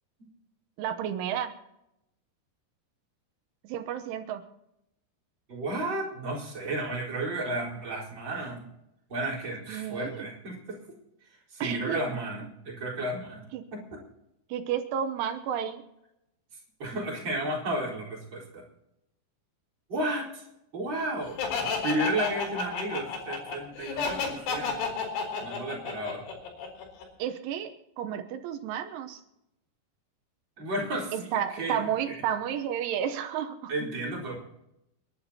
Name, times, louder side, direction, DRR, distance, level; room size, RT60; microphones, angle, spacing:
voice 1, 0.8-1.5 3.7-4.4 9.7-10.3 11.6-12.0 13.5-13.7 14.5-15.8 27.2-29.2 31.1-33.7, right 9 dB, 85° right, 7 dB, 3.4 m, -32 dB
voice 2, 5.5-8.7 9.1-10.8 11.5-13.4 13.7-13.8 16.8-18.6 19.9-20.4 20.7-21.4 21.8-24.9 25.4-26.2 30.6-31.8 32.1-32.2 33.7-34.4, right 1 dB, 25° right, -5 dB, 4.5 m, -32 dB
Laughter, 21.4-27.0, left 5 dB, 85° left, 6.5 m, -31 dB
30.0 x 11.5 x 2.9 m, 0.85 s
omnidirectional pair, 5.4 m